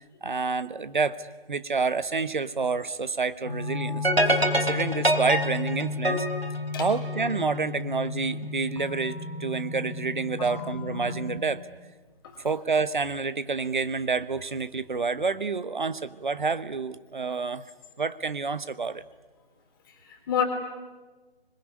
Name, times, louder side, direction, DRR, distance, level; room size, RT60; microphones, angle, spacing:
voice 1, 0.2-4.1 4.5-6.2 6.8-11.6 12.4-17.6 18.0-19.0, right 4 dB, 55° right, 14 dB, 1.1 m, -28 dB
sound 1, 3.4-11.4, left 3 dB, 5° left, 2.5 m, -34 dB
sound 2, 4.0-7.4, right 1 dB, 85° right, 3.5 m, -25 dB
voice 2, 19.8-20.4, left 8 dB, 20° left, 3 dB, 3.3 m, -30 dB
26.0 x 21.5 x 9.7 m, 1.3 s
figure-of-eight pair, 150°, 30 cm